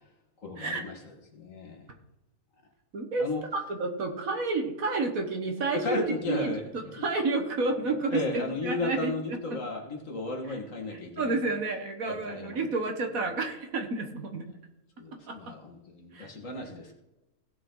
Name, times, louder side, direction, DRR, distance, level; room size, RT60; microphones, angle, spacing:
voice 1, 0.4-1.0 1.3-1.9 3.2-3.4 5.7-6.6 6.9-7.0 8.1-11.6 12.1-12.7 15.0-16.9, left 3 dB, 55° left, 2 dB, 2.1 m, -34 dB
voice 2, 2.9-6.0 6.3-9.1 9.5-9.6 11.2-14.4 15.3-15.5 16.1-16.3, right 3 dB, 60° right, 5 dB, 1.7 m, -30 dB
16.5 x 6.4 x 3.9 m, 0.97 s
omnidirectional pair, 1.7 m